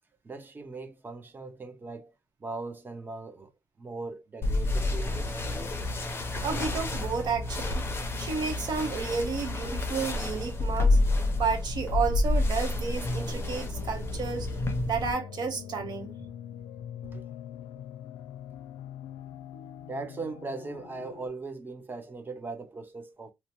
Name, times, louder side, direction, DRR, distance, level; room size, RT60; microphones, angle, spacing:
voice 1, 0.2-2.1 2.4-3.5 3.8-5.3 17.0-17.2 19.9-23.3, right 3 dB, 25° right, 0.7 m, -39 dB
sound 1, 4.4-15.1, left 2 dB, 25° left, 0.6 m, -29 dB
voice 2, 6.4-7.9 8.2-11.0 11.4-14.5 14.9-16.1, right 5 dB, 55° right, 1.0 m, -31 dB
sound 2, 13.3-21.3, left 9 dB, 90° left, 0.5 m, -43 dB
2.8 x 2.1 x 3.0 m
cardioid pair, 130°, 8 cm